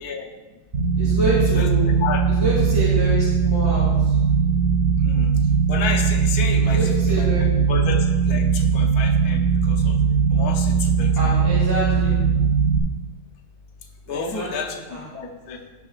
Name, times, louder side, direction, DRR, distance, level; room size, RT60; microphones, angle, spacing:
sound 1, 0.7-12.8, right 6 dB, 60° right, 1.8 m, -19 dB
voice 1, 1.0-1.9 2.3-4.1 6.6-7.7 11.2-12.1 14.1-15.0, right 1 dB, 15° right, -7 dB, 2.1 m, -27 dB
voice 2, 1.5-2.4 5.0-5.3 5.7-10.0 10.3-11.3 12.3-12.4 12.7-12.8 14.1-15.6, left 5 dB, 70° left, 3 dB, 1.4 m, -31 dB
15.5 x 6.5 x 2.4 m, 1.2 s
omnidirectional pair, 1.7 m